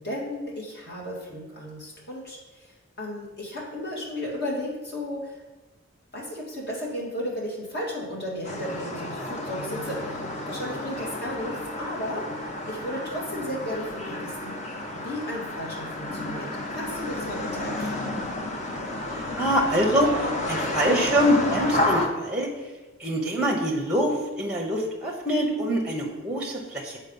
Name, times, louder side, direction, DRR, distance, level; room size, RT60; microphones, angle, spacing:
voice 1, 0.0-2.7 3.0-5.4 6.1-10.2 10.5-12.3 12.7-14.6 15.0-18.0, equal, 50° left, -3 dB, 2.0 m, -34 dB
sound 1, 8.4-22.1, left 1 dB, 35° left, 0.7 m, -31 dB
voice 2, 19.2-22.5 23.0-27.0, equal, 5° right, 1 dB, 0.9 m, -25 dB
7.1 x 4.3 x 5.4 m, 1.1 s
head